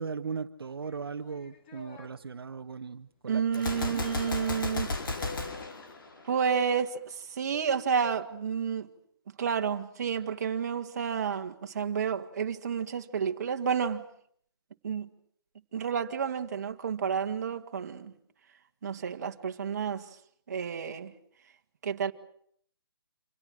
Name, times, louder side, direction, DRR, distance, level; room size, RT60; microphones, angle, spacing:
voice 1, 0.0-4.0, right 5 dB, 70° right, 1.4 m, -38 dB
sound 1, 0.8-2.1 4.3-5.9, left 2 dB, 25° left, 2.7 m, -47 dB
voice 2, 3.3-4.9 6.2-8.9 9.4-14.0 14.8-15.1 15.7-18.1 18.8-20.1 20.5-21.1 21.8-22.1, right 7 dB, 40° right, 2.1 m, -30 dB
Gunshot gunfire, 3.5-6.6, left 3 dB, 55° left, 4.9 m, -34 dB
28.5 x 26.5 x 6.4 m
hypercardioid pair, 170°, 13 cm